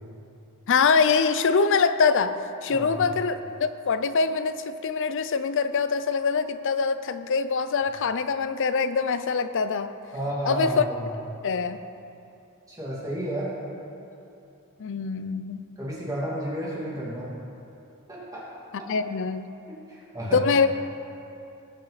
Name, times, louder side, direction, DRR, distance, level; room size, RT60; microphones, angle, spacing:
voice 1, 0.7-2.4 2.6-9.9 10.5-10.8 11.4-11.8 14.8-15.6 18.9-19.5 20.3-20.7, left 5 dB, 55° left, 11 dB, 0.5 m, -24 dB
voice 2, 2.7-3.0 10.1-11.0 12.7-13.5 15.8-17.3 18.1-18.4 18.8-18.9 19.9-20.4, right 1 dB, 15° right, -7 dB, 2.6 m, -31 dB
19.5 x 6.5 x 4.1 m, 2.7 s
head